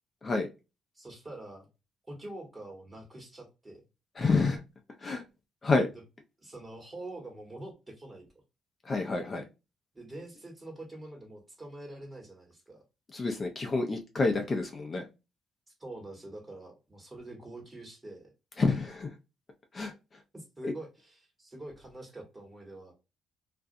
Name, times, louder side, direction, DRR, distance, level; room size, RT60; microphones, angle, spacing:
voice 1, 0.9-1.7 2.1-3.8 6.4-8.2 9.9-12.8 15.8-18.3 20.3-22.9, right 2 dB, 20° right, 1.2 m, -45 dB
voice 2, 4.2-4.6 5.0-5.2 5.6-5.9 8.8-9.5 13.1-15.1 18.6-19.2 19.7-19.9 20.6-20.7, left 3 dB, 35° left, 0.5 m, -28 dB
2.4 x 2.2 x 2.5 m
cardioid pair, 90°, 0 cm